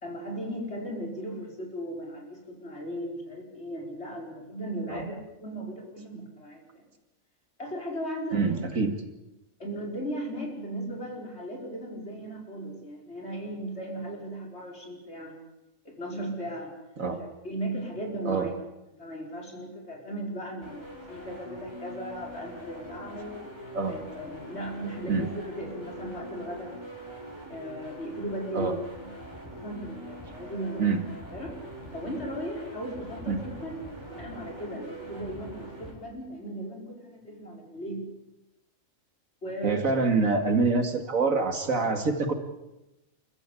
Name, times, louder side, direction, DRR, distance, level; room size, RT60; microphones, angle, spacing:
voice 1, 0.0-6.8 7.6-8.6 9.6-15.4 15.9-16.7 17.1-18.5 19.0-23.4 23.9-26.7 27.5-29.1 29.6-30.9 31.2-31.5 31.9-33.8 34.1-38.1 39.4-39.9, right 1 dB, 55° left, 0 dB, 5.3 m, -37 dB
voice 2, 8.3-8.9 17.0-17.2 18.3-18.5 23.7-24.0 25.1-25.2 28.5-28.7 30.8-31.0 33.3-33.4 39.6-42.3, right 4 dB, 80° right, 6 dB, 2.8 m, -25 dB
sound 1, 20.6-35.9, equal, 20° right, 5.8 m, -43 dB
29.0 x 14.5 x 8.6 m, 0.96 s
omnidirectional pair, 1.4 m